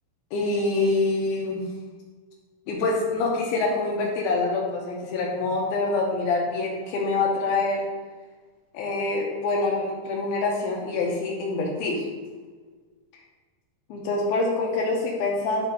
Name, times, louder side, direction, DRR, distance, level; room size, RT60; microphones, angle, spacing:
voice 1, 0.3-1.6 2.7-7.8 8.7-12.0 13.9-15.7, left 3 dB, 70° left, -1 dB, 2.4 m, -25 dB
11.5 x 4.2 x 4.2 m, 1.4 s
omnidirectional pair, 5.3 m